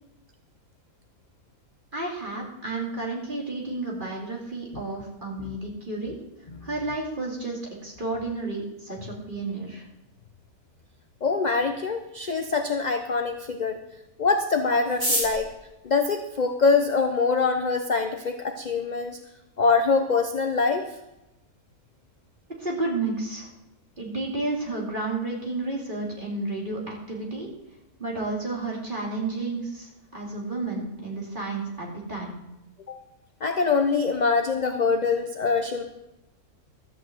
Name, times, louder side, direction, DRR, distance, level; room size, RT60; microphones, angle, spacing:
voice 1, 1.9-6.2 6.6-9.8 22.6-23.5 24.0-27.5 28.0-32.3, right 2 dB, 30° right, -2 dB, 2.7 m, -31 dB
voice 2, 11.2-13.8 14.2-15.5 15.8-19.2 19.6-20.8 32.9-33.0 33.4-35.8, left 4 dB, 45° left, 6 dB, 0.6 m, -24 dB
sound 1, 14.8-17.1 17.9-18.0 18.2-18.3 18.6-19.0 19.4-19.5 19.6-20.1 20.4-20.6 20.9-21.2, right 1 dB, 55° right, 4.4 m, -30 dB
13.0 x 5.6 x 7.7 m, 0.95 s
omnidirectional pair, 1.6 m